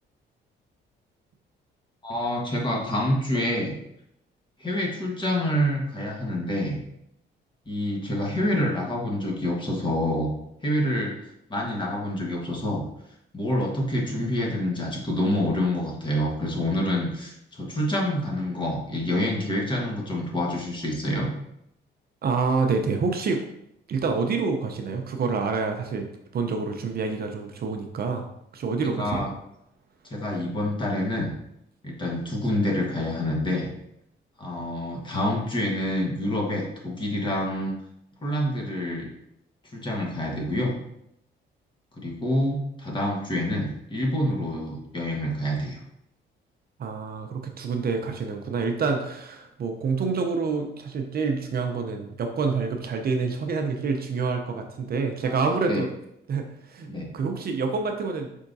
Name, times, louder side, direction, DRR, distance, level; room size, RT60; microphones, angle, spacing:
voice 1, 2.0-3.8 4.6-6.8 7.7-10.3 10.6-11.1 11.5-12.9 13.3-21.3 29.0-29.3 30.0-31.3 31.8-33.7 34.4-37.7 38.2-39.1 39.7-40.8 42.0-45.8 55.2-55.8 56.9-57.1, left 1 dB, 25° left, -1 dB, 1.3 m, -27 dB
voice 2, 22.2-23.4 23.9-28.3 28.5-29.2 46.8-55.9 56.3-56.9 57.1-58.3, right 4 dB, 50° right, 4 dB, 0.6 m, -27 dB
5.4 x 3.6 x 2.6 m, 0.78 s
cardioid pair, 90°, 20 cm